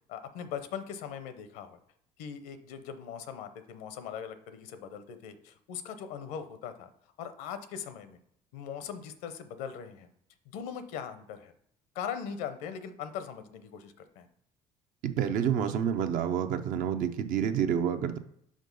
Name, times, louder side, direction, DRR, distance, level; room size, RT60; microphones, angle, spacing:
voice 1, 0.1-1.8 2.2-6.9 7.2-8.2 8.5-10.1 10.5-11.5 11.9-14.3, left 8 dB, 80° left, 10 dB, 0.7 m, -40 dB
voice 2, 15.0-18.2, right 8 dB, 70° right, 8 dB, 0.6 m, -28 dB
5.2 x 3.7 x 5.3 m, 0.69 s
supercardioid pair, 75°, 15 cm